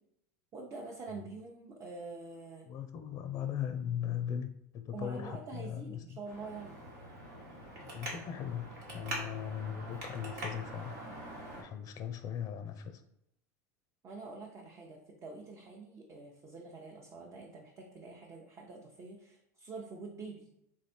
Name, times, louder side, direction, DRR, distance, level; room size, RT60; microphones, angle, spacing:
voice 1, 0.5-2.7 4.9-6.9 14.0-20.5, right 3 dB, 35° right, 0 dB, 0.8 m, -46 dB
voice 2, 2.7-6.2 7.8-11.0 11.6-13.0, left 9 dB, 40° left, 10 dB, 0.5 m, -39 dB
Traffic noise roadway noise, 6.2-11.6, right 1 dB, 80° right, 1.6 m, -44 dB
3.6 x 3.2 x 4.2 m, 0.78 s
hypercardioid pair, 95°, 9 cm